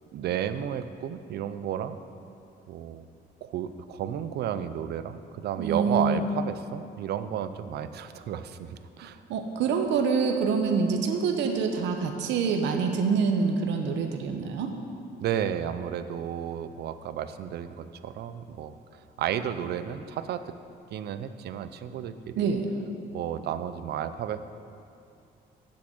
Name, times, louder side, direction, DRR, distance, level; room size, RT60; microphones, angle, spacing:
voice 1, 0.1-2.0 2.7-3.0 3.4-9.2 15.2-18.7 19.2-20.5 20.9-22.5 23.1-24.4, right 9 dB, 65° right, 12 dB, 0.5 m, -32 dB
voice 2, 5.6-6.2 9.3-14.7 22.4-22.7, right 5 dB, 85° right, 4 dB, 0.9 m, -26 dB
7.7 x 7.0 x 7.7 m, 2.5 s
cardioid pair, 140°, 18 cm